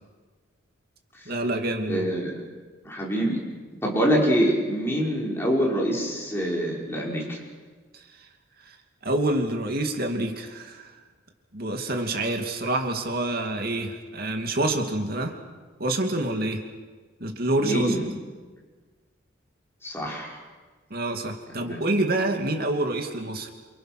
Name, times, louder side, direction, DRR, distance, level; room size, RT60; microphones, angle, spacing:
voice 1, 1.3-2.0 8.7-8.8 9.0-10.9 11.5-15.3 15.8-16.6 17.2-18.0 20.9-23.5, right 1 dB, 50° right, 3 dB, 2.7 m, -27 dB
voice 2, 1.9-2.3 2.8-3.4 3.8-7.4 17.6-18.1 19.8-20.4 21.5-21.8, equal, 10° left, -3 dB, 5.5 m, -25 dB
28.5 x 27.5 x 6.2 m, 1.4 s
head